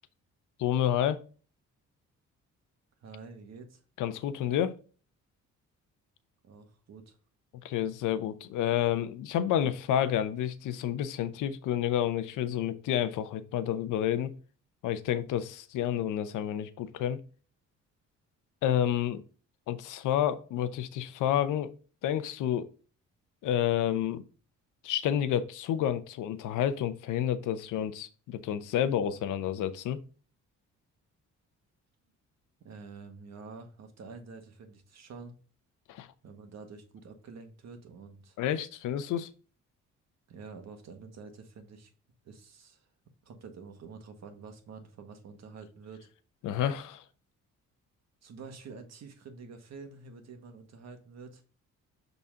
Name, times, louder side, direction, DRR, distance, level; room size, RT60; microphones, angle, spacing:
voice 1, 0.6-1.2 4.0-4.7 7.6-14.3 14.8-17.2 18.6-19.2 19.7-21.7 22.0-22.7 23.4-24.2 24.8-30.0 35.9-36.1 38.4-39.3 46.4-47.0, left 10 dB, 85° left, 0.8 m, -29 dB
voice 2, 3.0-3.8 6.4-7.2 32.6-35.3 36.2-38.4 40.3-41.9 42.2-42.9 43.2-46.1 48.2-51.4, right 4 dB, 60° right, 1.7 m, -48 dB
7.1 x 4.1 x 3.7 m
cardioid pair, 90°, 30 cm